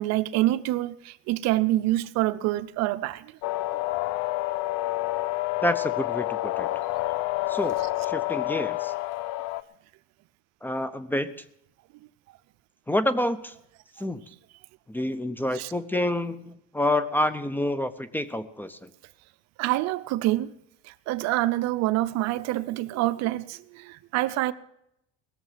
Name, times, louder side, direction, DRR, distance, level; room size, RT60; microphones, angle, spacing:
voice 1, 0.0-3.3 15.5-15.7 19.6-20.5 20.8-24.5, right 16 dB, 65° right, 0.7 m, -26 dB
sound 1, 3.4-9.6, left 17 dB, 70° left, 0.6 m, -28 dB
voice 2, 5.6-6.7 7.5-7.8 8.0-8.9 10.6-11.3 12.9-13.5 14.0-14.2 14.9-18.9, left 1 dB, 5° left, 0.6 m, -28 dB
18.5 x 7.3 x 7.5 m
cardioid pair, 130°, 29 cm